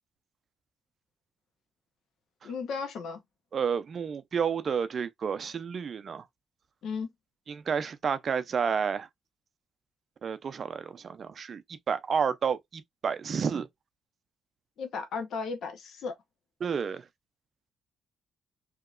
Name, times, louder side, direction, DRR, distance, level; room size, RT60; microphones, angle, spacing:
voice 1, 2.4-3.2 6.8-7.1 14.8-16.1, left 5 dB, 70° left, 0.9 m, -35 dB
voice 2, 3.5-6.3 7.5-9.1 10.2-13.7 16.6-17.1, right 6 dB, 50° right, 0.4 m, -30 dB
3.0 x 2.8 x 2.4 m
cardioid pair, 90°, 0 cm